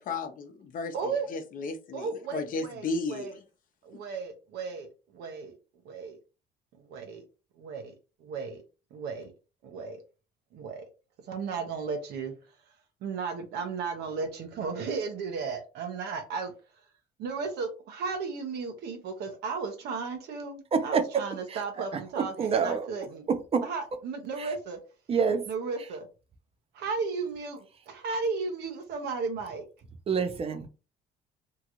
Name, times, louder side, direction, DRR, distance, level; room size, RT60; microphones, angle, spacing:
voice 1, 0.1-3.4, left 3 dB, 55° left, 0.7 m, -34 dB
voice 2, 0.9-1.3 1.9-3.3 3.8-5.5 5.8-6.2 6.9-7.2 7.6-7.9 8.2-8.6 8.9-9.3 9.6-10.0 10.5-10.8 11.3-12.3 13.0-16.5 17.2-23.3 23.6-24.8 25.5-26.1 26.7-29.7, right 4 dB, 80° right, 0.9 m, -34 dB
voice 3, 20.7-21.0 21.5-21.6 21.9-22.0 22.4-22.9 23.5-23.6 24.4-24.5 25.1-25.4 30.1-30.7, right 6 dB, 35° right, 0.6 m, -26 dB
2.9 x 2.5 x 2.9 m
cardioid pair, 110°, 17 cm